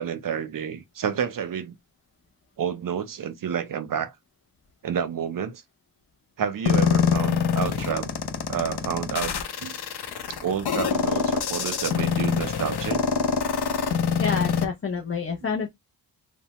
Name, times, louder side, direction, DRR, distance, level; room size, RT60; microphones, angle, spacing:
voice 1, 0.0-1.8 2.6-4.2 4.8-5.6 6.4-8.1 8.5-9.3 9.6-9.8 10.3-13.0, right 8 dB, 55° right, 0.5 m, -29 dB
sound 1, 6.7-14.7, left 6 dB, 75° left, 0.6 m, -25 dB
voice 2, 14.2-15.7, left 5 dB, 35° left, 0.5 m, -28 dB
3.1 x 2.0 x 2.9 m
wide cardioid pair, 135°, 40 cm